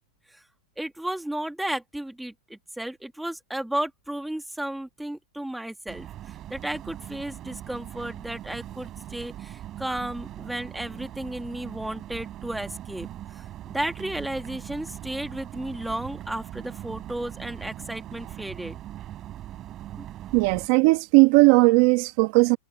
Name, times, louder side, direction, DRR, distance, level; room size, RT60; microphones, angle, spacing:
voice 1, 0.8-6.1 6.5-13.1 13.3-18.8 20.0-20.1, right 1 dB, 5° right, 2.0 m, -33 dB
sound 1, 5.9-20.7, right 12 dB, 30° right, 4.6 m, -40 dB
voice 2, 20.3-22.6, right 27 dB, 50° right, 1.7 m, -18 dB
supercardioid pair, 150°, 0 cm